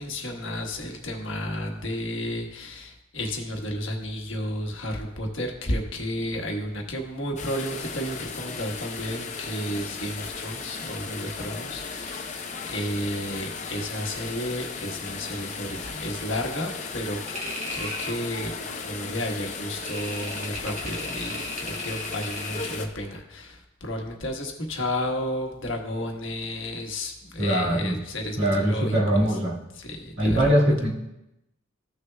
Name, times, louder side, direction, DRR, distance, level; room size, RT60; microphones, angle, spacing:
voice 1, 0.0-17.2 17.7-29.3 29.8-30.5, left 1 dB, 60° left, 1 dB, 1.3 m, -32 dB
sound 1, 7.4-22.9, left 4 dB, 35° left, 0.7 m, -36 dB
sound 2, 17.3-18.2 19.8-22.9, equal, 35° right, 1.5 m, -36 dB
voice 2, 27.4-28.0 28.4-29.6 30.2-30.9, equal, 60° right, -5 dB, 2.0 m, -22 dB
15.0 x 6.5 x 2.3 m, 0.92 s
head